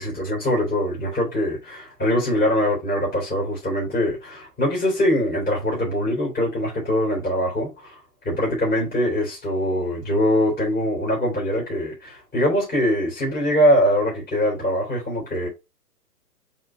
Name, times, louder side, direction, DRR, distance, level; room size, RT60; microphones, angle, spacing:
voice 1, 0.0-8.0 8.3-15.5, equal, 20° left, 3.7 m, -22 dB
7.7 x 4.0 x 3.2 m
figure-of-eight pair, 130°, 47 cm